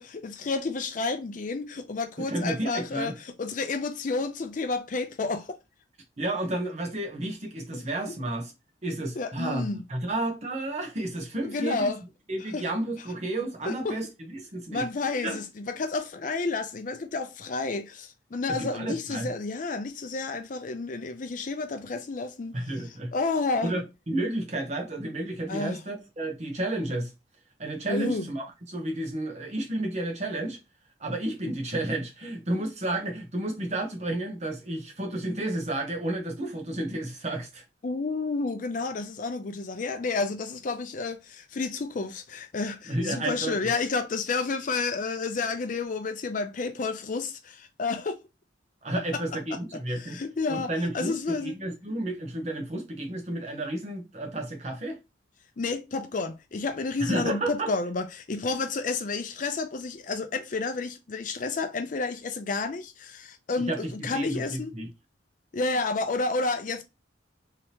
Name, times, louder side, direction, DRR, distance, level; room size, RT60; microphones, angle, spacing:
voice 1, 0.0-5.6 7.7-7.8 9.2-9.8 11.4-12.0 12.5-12.6 13.7-14.0 14.7-22.6 23.1-23.8 25.5-25.8 27.9-28.3 37.8-48.2 49.1-49.2 49.9-50.7 50.9-51.5 55.6-64.7 65.5-66.8, left 3 dB, 45° left, 0.4 m, -30 dB
voice 2, 2.2-3.2 6.2-8.5 8.8-11.9 12.3-14.8 15.2-15.4 18.5-19.3 22.5-23.1 23.6-27.1 27.6-30.6 31.0-37.6 42.9-43.7 48.8-50.2 50.5-55.0 57.0-57.7 63.7-64.9, right 1 dB, 35° right, 0.9 m, -31 dB
3.4 x 2.8 x 2.8 m
head